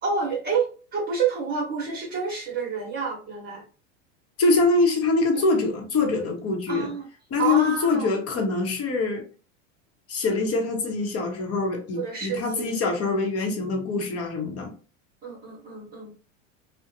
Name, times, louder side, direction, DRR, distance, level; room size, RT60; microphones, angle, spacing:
voice 1, 0.0-3.6 5.3-5.4 6.7-7.0 7.4-8.1 11.9-12.8 13.5-13.7 15.2-16.1, right 5 dB, 25° right, 1.0 m, -29 dB
voice 2, 4.4-6.9 7.3-9.2 10.1-14.7, left 3 dB, 35° left, 0.9 m, -24 dB
2.4 x 2.2 x 2.8 m
hypercardioid pair, 95°, 40 cm